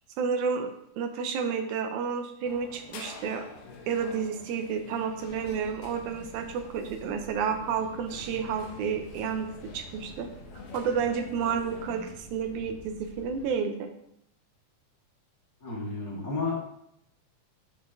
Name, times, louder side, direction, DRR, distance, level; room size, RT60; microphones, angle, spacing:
voice 1, 0.2-0.7 1.0-3.4 3.9-9.5 9.7-10.3 10.7-13.9, right 6 dB, 75° right, 6 dB, 2.0 m, -30 dB
sound 1, 2.4-12.2, left 4 dB, 90° left, 2.6 m, -47 dB
sound 2, 5.2-13.5, equal, 60° left, 2.7 m, -49 dB
voice 2, 15.6-16.6, left 3 dB, 35° left, -4 dB, 1.5 m, -31 dB
7.5 x 6.8 x 2.7 m, 0.76 s
omnidirectional pair, 3.7 m